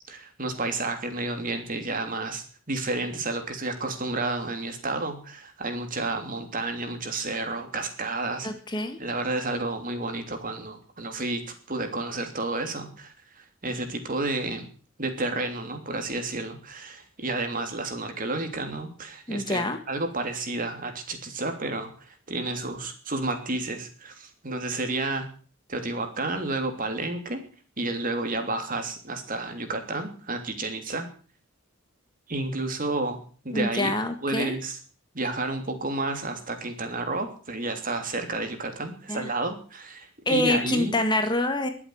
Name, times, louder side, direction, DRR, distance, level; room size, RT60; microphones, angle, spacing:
voice 1, 0.1-8.5 8.7-14.7 15.0-25.3 25.7-27.4 27.8-31.1 32.3-33.2 33.4-33.9 34.2-34.8 35.1-40.9, right 2 dB, 40° right, 6 dB, 3.1 m, -31 dB
voice 2, 8.4-9.0 19.3-19.8 33.5-34.5 39.1-39.3 40.2-41.7, left 1 dB, 20° left, 7 dB, 1.7 m, -26 dB
22.0 x 7.9 x 8.0 m, 0.43 s
head